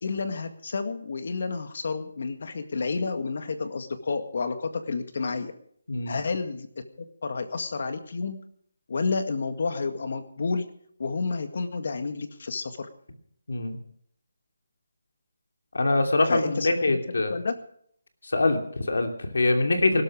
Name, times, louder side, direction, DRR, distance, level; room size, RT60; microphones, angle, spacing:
voice 1, 0.0-5.5 6.1-6.7 7.0-8.4 8.9-10.6 11.0-12.9 16.3-17.0 17.3-17.5, left 4 dB, 60° left, 8 dB, 1.9 m, -30 dB
voice 2, 15.7-17.3 18.2-20.0, left 2 dB, 80° left, 5 dB, 3.0 m, -24 dB
19.5 x 12.5 x 5.0 m, 0.65 s
hypercardioid pair, 165°, 0 cm